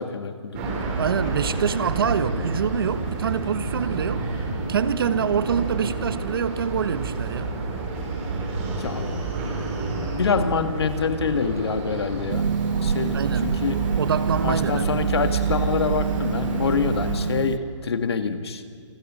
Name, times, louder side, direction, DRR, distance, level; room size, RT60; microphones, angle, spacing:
voice 1, 0.0-0.8 8.8-9.2 9.5-13.8 14.4-18.6, left 5 dB, 55° left, 1.8 m, -26 dB
sound 1, 0.5-17.1, right 4 dB, 25° right, 5.1 m, -29 dB
voice 2, 1.0-4.3 4.7-7.5 13.1-13.6 14.0-15.0, right 7 dB, 45° right, 1.1 m, -25 dB
Harp, 12.3-17.6, right 6 dB, 90° right, 0.7 m, -27 dB
28.5 x 20.5 x 6.4 m
hypercardioid pair, 165°, 16 cm